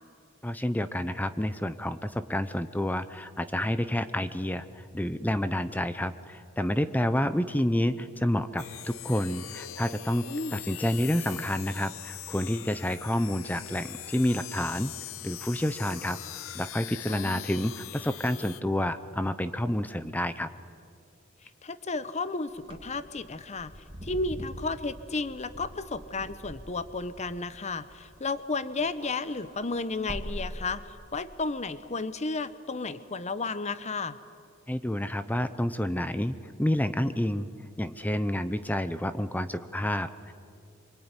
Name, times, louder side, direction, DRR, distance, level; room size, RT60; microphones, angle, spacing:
voice 1, 0.4-10.2 10.5-14.9 15.2-16.2 16.5-20.5 34.7-37.5 37.8-40.3, left 1 dB, 10° left, 12 dB, 0.7 m, -29 dB
sound 1, 8.6-18.6, left 13 dB, 85° left, 0.7 m, -42 dB
voice 2, 10.3-10.6 17.1-17.4 21.4-23.7 24.0-34.2, left 3 dB, 35° left, 14 dB, 0.9 m, -33 dB
Wind / Car, 22.6-28.4 28.7-31.2, equal, 25° right, 2.2 m, -43 dB
25.5 x 23.0 x 9.8 m, 2.3 s
head